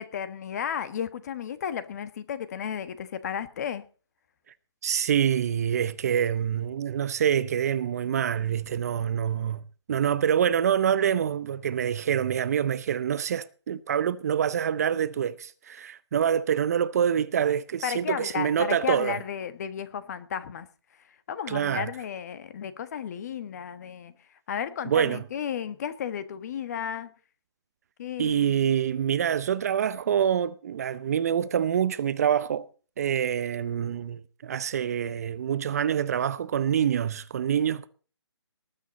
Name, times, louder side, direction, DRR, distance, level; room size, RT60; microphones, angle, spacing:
voice 1, 0.0-3.8 17.8-20.7 21.3-24.1 24.5-27.1 28.0-28.5, left 8 dB, 35° left, 1.3 m, -33 dB
voice 2, 4.8-19.2 21.5-21.9 24.8-25.2 28.2-32.7 33.0-37.9, right 9 dB, 35° right, 0.6 m, -26 dB
19.5 x 8.9 x 4.1 m
hypercardioid pair, 160°, 15 cm